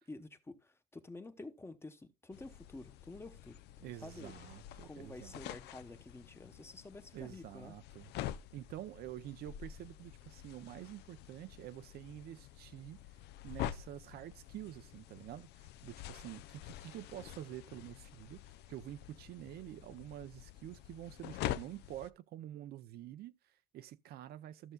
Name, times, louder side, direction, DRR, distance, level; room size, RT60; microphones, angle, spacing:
voice 1, 0.1-4.3 4.8-7.8, left 2 dB, 15° left, 0.9 m, -50 dB
sound 1, 2.3-22.1, left 13 dB, 80° left, 0.5 m, -47 dB
voice 2, 3.8-5.4 7.1-8.1 8.5-13.0 13.4-18.4 18.7-24.7, right 13 dB, 70° right, 0.6 m, -48 dB
14.0 x 6.6 x 2.2 m
cardioid pair, 110°, 17 cm